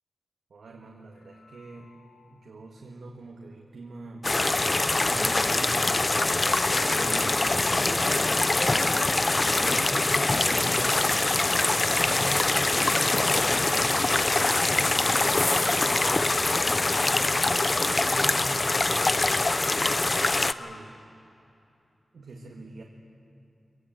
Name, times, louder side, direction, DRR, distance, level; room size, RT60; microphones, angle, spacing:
voice 1, 0.5-2.0 2.3-8.1 8.8-11.1 11.4-15.9 16.5-17.8 18.1-20.0 20.6-21.1 22.1-22.8, right 2 dB, 85° right, 0 dB, 1.7 m, -43 dB
sound 1, 1.2-2.6 3.0-3.1 3.5-3.6 4.1-4.2 9.0-20.8, left 3 dB, 90° left, 1.4 m, -48 dB
sound 2, 4.2-20.5, left 2 dB, 30° left, 0.5 m, -24 dB
24.5 x 18.0 x 7.9 m, 2.8 s
wide cardioid pair, 100°, 0 cm